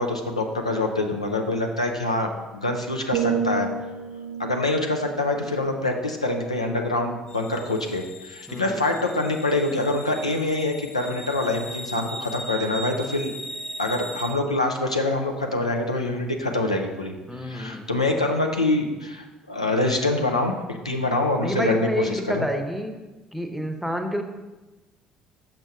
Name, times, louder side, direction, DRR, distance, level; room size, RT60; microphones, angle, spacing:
voice 1, 0.0-3.7 4.4-13.3 13.8-22.5, left 2 dB, 85° left, 2 dB, 0.5 m, -25 dB
sound 1, 3.1-7.0 7.5-7.8, right 6 dB, 55° right, 0.3 m, -32 dB
sound 2, 7.3-14.3, equal, 30° left, 0.8 m, -38 dB
voice 2, 8.5-8.8 17.3-18.0 21.4-22.9 23.3-24.2, equal, ahead, 4 dB, 0.8 m, -28 dB
6.3 x 5.9 x 3.5 m, 1.2 s
figure-of-eight pair, 55°, 3 cm